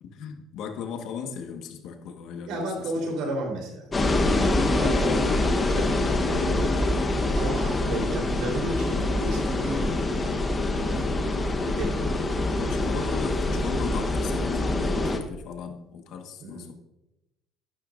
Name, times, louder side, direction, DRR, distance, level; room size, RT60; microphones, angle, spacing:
voice 1, 0.0-2.9 6.3-6.6 12.7-16.7, left 6 dB, 65° left, 5 dB, 1.4 m, -37 dB
voice 2, 2.5-6.9 7.4-9.9 10.2-11.2 11.6-12.8 16.4-16.7, right 1 dB, 75° right, 1 dB, 3.7 m, -34 dB
sound 1, 3.9-15.2, left 2 dB, 20° left, 1.1 m, -25 dB
13.0 x 11.5 x 2.6 m, 0.93 s
cardioid pair, 130°, 0 cm